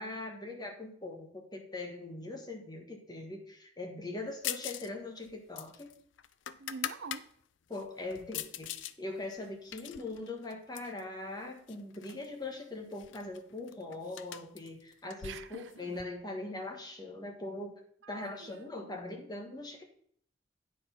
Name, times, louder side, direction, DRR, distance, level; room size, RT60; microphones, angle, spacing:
voice 1, 0.0-6.0 7.7-8.7 9.0-17.8 18.1-19.8, left 2 dB, 20° left, 1.5 m, -41 dB
sound 1, 4.4-4.9 5.2-7.2 7.7-8.9 9.3-11.0 11.7-12.3 12.5-12.6 12.9-16.0, left 11 dB, 75° left, 0.5 m, -42 dB
voice 2, 6.6-7.3 15.2-15.8 18.0-18.7, right 5 dB, 70° right, 0.5 m, -45 dB
9.1 x 4.7 x 5.8 m
head